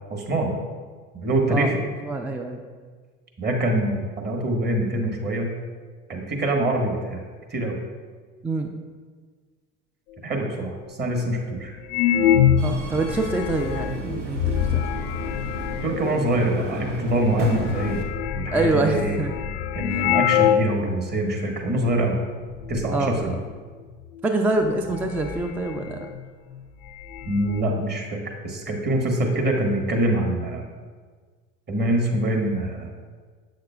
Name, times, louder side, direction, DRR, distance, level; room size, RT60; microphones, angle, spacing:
voice 1, 0.1-0.5 1.1-1.8 3.4-5.5 6.1-7.2 7.5-7.7 10.2-11.7 15.8-18.0 18.3-19.2 19.7-22.2 22.7-23.3 27.3-30.6 31.7-32.9, right 1 dB, 30° right, 1 dB, 1.4 m, -24 dB
voice 2, 2.0-2.6 8.4-8.7 12.6-14.8 18.5-19.3 19.9-20.0 22.9-23.3 24.2-26.1, right 2 dB, 5° right, 4 dB, 0.3 m, -25 dB
sound 1, 10.4-10.5 11.2-11.3 11.8-16.1 16.9-17.0 17.2-20.8 21.1-21.2 21.8-22.1 22.4-22.9 24.2-24.3 24.7-26.3 26.5-26.6 26.9-27.6, left 9 dB, 70° left, 0.5 m, -25 dB
Subway metro underground, 12.6-18.0, right 3 dB, 85° right, 1.0 m, -35 dB
7.9 x 6.4 x 2.3 m, 1.5 s
hypercardioid pair, 80°, 36 cm